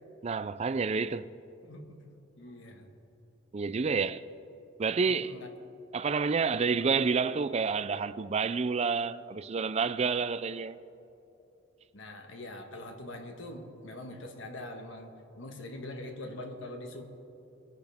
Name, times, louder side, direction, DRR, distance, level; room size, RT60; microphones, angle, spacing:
voice 1, 0.2-1.3 3.5-4.2 4.8-5.3 5.9-10.8, right 5 dB, 35° right, 0.4 m, -29 dB
voice 2, 1.6-2.0 2.3-2.9 5.1-5.5 11.9-17.0, left 1 dB, 70° left, 1.6 m, -43 dB
24.0 x 10.5 x 3.6 m
head